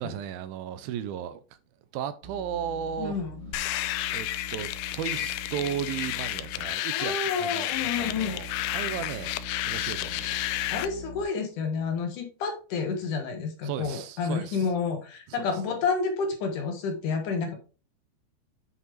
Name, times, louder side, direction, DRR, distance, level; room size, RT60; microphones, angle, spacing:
voice 1, 0.0-1.4 1.9-3.2 4.1-8.5 8.7-9.4 9.7-10.4 13.6-14.7 15.3-15.5, right 9 dB, 85° right, 2.4 m, -35 dB
sound 1, 2.2-7.1 7.7-11.2, equal, 25° left, 2.0 m, -43 dB
voice 2, 3.0-3.5 6.9-8.3 10.7-17.6, left 5 dB, 65° left, 2.5 m, -30 dB
sound 2, 3.5-10.9, left 15 dB, 85° left, 2.5 m, -31 dB
8.3 x 5.5 x 3.1 m
omnidirectional pair, 4.3 m